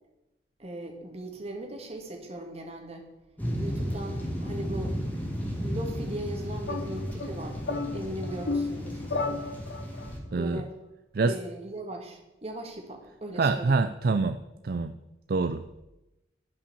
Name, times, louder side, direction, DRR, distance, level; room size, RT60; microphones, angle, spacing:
voice 1, 0.6-3.1 3.6-5.0 5.6-7.6 7.9-9.0 10.3-10.7 11.2-13.8, right 1 dB, 35° right, 2 dB, 1.8 m, -38 dB
sound 1, 3.4-10.2, equal, 10° left, 1.9 m, -34 dB
sound 2, 6.6-10.1, left 3 dB, 75° left, 0.9 m, -33 dB
voice 2, 10.3-10.6 11.1-11.3 13.4-14.4 14.6-14.9 15.3-15.8, right 4 dB, 55° right, 10 dB, 0.4 m, -25 dB
11.5 x 5.7 x 6.8 m, 0.98 s
head